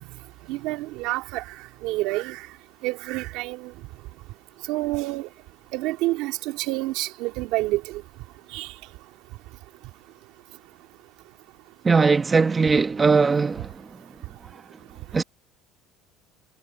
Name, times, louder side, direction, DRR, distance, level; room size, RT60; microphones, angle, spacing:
voice 1, 0.5-1.4 1.8-2.4 2.8-3.7 4.7-5.3 5.7-8.0 8.5-8.7, right 19 dB, 70° right, 2.2 m, -28 dB
voice 2, 11.8-13.7 15.1-15.2, right 4 dB, 20° right, 1.1 m, -19 dB
supercardioid pair, 110°, 0 cm